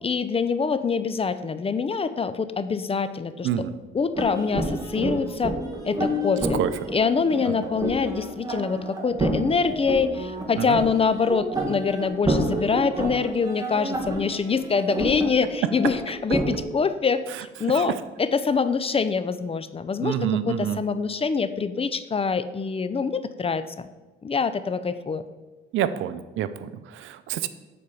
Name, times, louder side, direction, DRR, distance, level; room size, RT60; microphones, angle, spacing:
voice 1, 0.0-3.7 3.9-5.6 5.8-6.6 6.9-17.2 17.6-23.9 24.2-25.2, left 5 dB, 30° left, 12 dB, 0.5 m, -25 dB
voice 2, 3.4-3.8 6.5-6.7 7.5-7.6 10.6-10.8 17.7-17.8 20.0-20.8 25.7-27.5, right 10 dB, 80° right, 13 dB, 0.6 m, -27 dB
sound 1, 4.1-16.6, right 1 dB, 20° right, 1.8 m, -29 dB
8.2 x 4.3 x 6.8 m, 1.2 s
cardioid pair, 90°, 20 cm